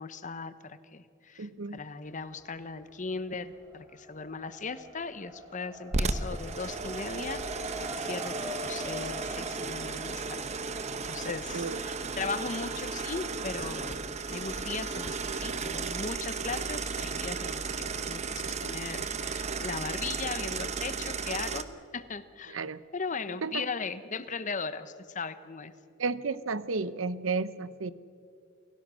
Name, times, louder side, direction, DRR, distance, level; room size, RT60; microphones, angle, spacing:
voice 1, 0.0-21.7 21.9-22.6 22.9-25.7, left 4 dB, 40° left, 13 dB, 0.9 m, -38 dB
voice 2, 1.4-1.8 11.5-11.8 22.5-22.8 23.4-23.6 26.0-27.9, right 4 dB, 85° right, 15 dB, 0.8 m, -32 dB
Race car auto racing, 2.0-2.8 3.1-14.5, equal, 15° right, 3.8 m, -44 dB
sound 1, 5.9-21.6, right 4 dB, 35° right, 0.9 m, -34 dB
29.0 x 17.0 x 6.3 m, 2.3 s
head